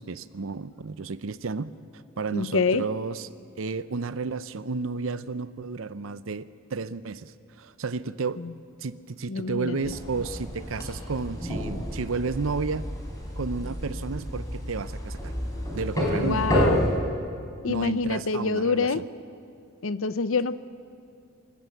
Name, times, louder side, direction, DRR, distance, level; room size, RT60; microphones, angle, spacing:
voice 1, 0.0-1.7 2.2-3.3 3.6-6.5 6.7-8.4 8.8-12.9 13.4-15.3 15.7-16.6 17.7-19.0, right 4 dB, 75° right, 15 dB, 0.7 m, -32 dB
voice 2, 2.3-2.9 8.4-8.5 9.3-9.9 16.1-16.9 17.6-19.0 19.8-20.6, left 4 dB, 75° left, 14 dB, 0.7 m, -26 dB
sound 1, 9.8-16.9, equal, 15° left, 4.2 m, -30 dB
27.5 x 14.0 x 8.0 m, 2.4 s
head